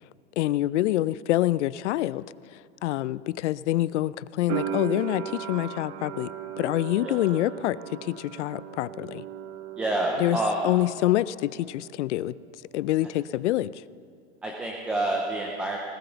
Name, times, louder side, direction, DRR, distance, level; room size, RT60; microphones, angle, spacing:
voice 1, 0.4-2.2 2.5-6.3 6.6-9.2 10.2-10.4 10.6-12.3 12.7-13.7, left 15 dB, 90° left, 19 dB, 0.5 m, -26 dB
sound 1, 4.5-11.3 11.5-12.4, right 10 dB, 35° right, 0.7 m, -37 dB
voice 2, 9.8-10.6 14.4-15.8, right 1 dB, 5° right, -1 dB, 0.4 m, -28 dB
18.0 x 10.0 x 6.9 m, 2.4 s
supercardioid pair, 165°, 34 cm